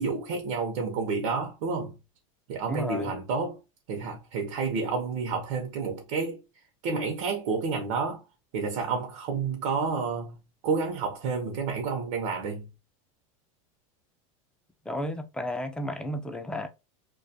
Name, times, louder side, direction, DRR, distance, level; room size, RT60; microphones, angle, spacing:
voice 1, 0.0-2.0 2.5-3.6 3.9-6.4 6.8-8.2 8.5-10.3 10.6-12.7, right 4 dB, 65° right, 0.6 m, -30 dB
voice 2, 2.7-3.1 14.9-16.7, left 1 dB, 5° left, 0.3 m, -32 dB
2.2 x 2.1 x 2.6 m
supercardioid pair, 120°, 18 cm